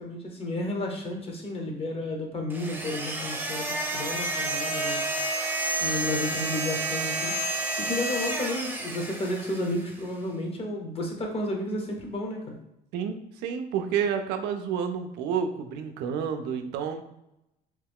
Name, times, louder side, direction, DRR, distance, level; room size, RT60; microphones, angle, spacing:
voice 1, 0.0-5.0 5.8-12.6, left 1 dB, 35° left, 1 dB, 0.8 m, -32 dB
sound 1, 2.5-9.9, right 2 dB, 10° right, 0.6 m, -30 dB
voice 2, 12.9-17.0, right 7 dB, 90° right, 6 dB, 0.4 m, -30 dB
3.0 x 2.3 x 3.4 m, 0.85 s
cardioid pair, 110°, 17 cm